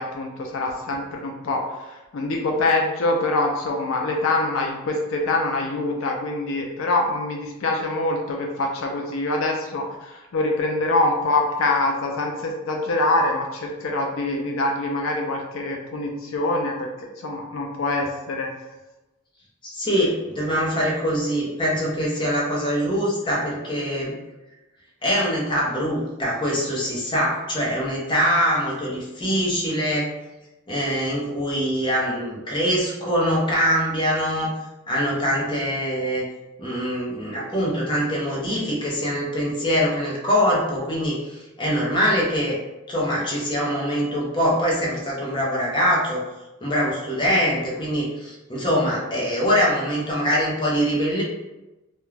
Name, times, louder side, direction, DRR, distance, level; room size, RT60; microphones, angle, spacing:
voice 1, 0.0-16.9 17.2-18.5, left 2 dB, 80° left, 1 dB, 0.4 m, -24 dB
voice 2, 19.6-24.1 25.0-30.1 30.7-34.5 34.9-36.2 36.6-42.6 42.9-46.2 46.6-51.2, equal, 25° left, -5 dB, 0.6 m, -23 dB
2.3 x 2.1 x 3.1 m, 1.0 s
head